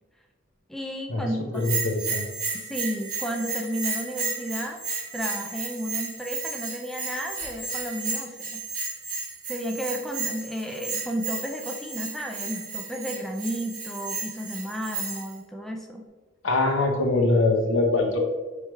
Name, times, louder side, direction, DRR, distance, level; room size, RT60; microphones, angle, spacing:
voice 1, 0.7-1.6 2.5-4.8 5.1-8.6 9.5-16.0, equal, ahead, 2 dB, 0.3 m, -32 dB
voice 2, 1.5-2.3 16.4-18.2, left 2 dB, 65° left, 3 dB, 0.7 m, -23 dB
Bell, 1.6-15.3, right 4 dB, 35° right, 1.0 m, -33 dB
4.7 x 3.4 x 3.1 m, 1.3 s
head